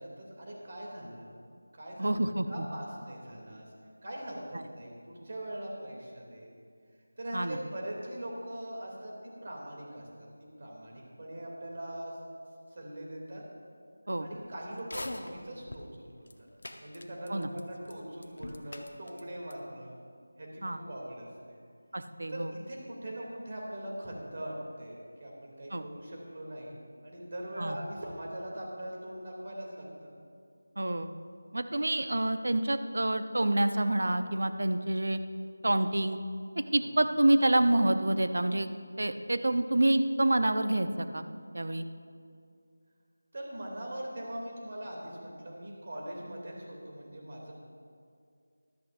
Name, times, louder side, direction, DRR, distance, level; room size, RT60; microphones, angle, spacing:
voice 1, 0.0-1.3 1.7-3.7 4.0-6.5 7.2-10.3 10.6-12.2 12.7-13.4 14.2-16.5 16.8-20.0 20.4-21.6 22.3-30.1 36.8-36.9 43.3-47.5, right 1 dB, 45° right, -2 dB, 2.7 m, -41 dB
voice 2, 2.0-2.7 4.5-4.6 7.3-7.6 14.1-14.3 17.3-17.5 20.6-20.8 21.9-22.5 25.7-25.8 27.6-27.8 30.8-31.1 31.5-35.2 35.6-36.2 36.6-38.7 39.0-41.2 41.5-41.9, right 1 dB, 65° right, 9 dB, 0.7 m, -27 dB
sound 1, 14.8-15.9 16.3-16.4 16.6-17.6 17.9-18.0 18.2-19.2 19.5-19.6, left 1 dB, 70° left, 0.8 m, -41 dB
14.0 x 12.5 x 2.6 m, 2.3 s
figure-of-eight pair, 165°, 0 cm